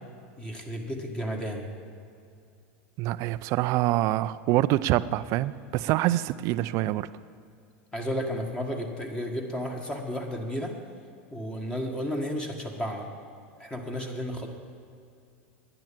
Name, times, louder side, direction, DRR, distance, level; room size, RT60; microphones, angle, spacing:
voice 1, 0.4-1.7 7.9-10.7 11.3-13.0 13.6-14.5, equal, 10° left, 2 dB, 1.6 m, -32 dB
voice 2, 3.0-7.1, right 15 dB, 50° right, 16 dB, 0.4 m, -25 dB
10.5 x 9.9 x 7.5 m, 2.4 s
supercardioid pair, 115°, 7 cm